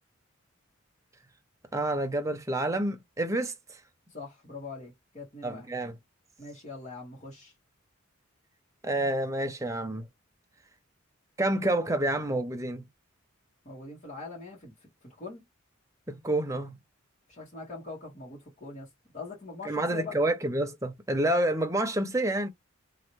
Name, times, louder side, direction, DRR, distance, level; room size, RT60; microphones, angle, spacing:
voice 1, 1.7-3.8 5.4-6.0 8.8-10.1 11.4-12.9 16.1-16.8 19.6-22.5, right 1 dB, 15° right, 0.7 m, -28 dB
voice 2, 4.1-5.7 6.4-7.5 13.7-14.7 15.0-15.4 17.3-18.9 19.1-20.1, left 3 dB, 35° left, 1.7 m, -42 dB
3.1 x 2.8 x 3.1 m
head